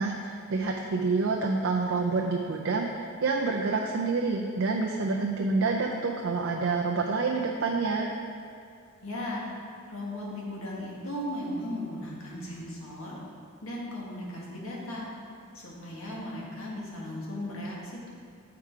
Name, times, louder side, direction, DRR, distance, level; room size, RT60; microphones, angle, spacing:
voice 1, 0.0-8.1, right 4 dB, 60° right, 1 dB, 0.5 m, -28 dB
voice 2, 9.0-9.4 9.9-13.2 13.6-15.0 15.5-18.1, left 1 dB, 70° left, -4 dB, 1.6 m, -36 dB
7.4 x 4.7 x 4.8 m, 2.3 s
head